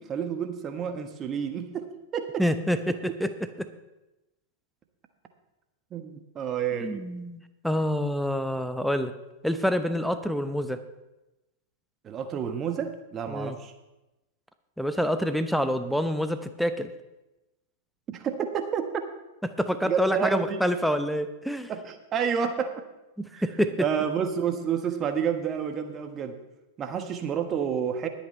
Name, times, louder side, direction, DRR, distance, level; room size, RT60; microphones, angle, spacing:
voice 1, 0.0-2.4 2.9-3.0 5.9-7.0 12.0-13.7 18.1-18.9 19.8-20.6 21.7-22.7 23.3-23.4 23.8-26.4 26.8-28.1, right 7 dB, 30° right, 7 dB, 1.3 m, -29 dB
voice 2, 2.4-2.9 3.2-3.3 6.8-9.1 9.4-10.8 13.3-13.6 14.8-16.9 19.6-21.7 23.2-23.8, equal, ahead, 10 dB, 0.8 m, -27 dB
21.0 x 8.6 x 3.3 m, 0.99 s
figure-of-eight pair, 95°, 0 cm